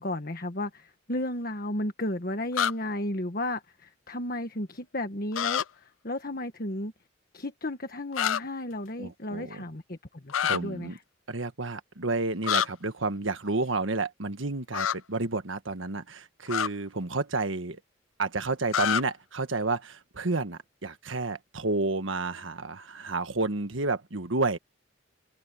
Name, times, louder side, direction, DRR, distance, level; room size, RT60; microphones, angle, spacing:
voice 1, 0.0-6.9 7.3-11.0, left 1 dB, 45° left, 1.5 m, -33 dB
sound 1, 2.5-2.7 5.3-5.6 8.1-8.4 10.3-10.6 12.4-12.7 14.7-15.0 16.5-16.7 18.7-19.0, left 9 dB, 85° left, 0.5 m, -26 dB
voice 2, 9.0-9.6 10.4-11.0 11.3-17.8 18.2-24.6, right 3 dB, 75° right, 1.5 m, -30 dB
open air
head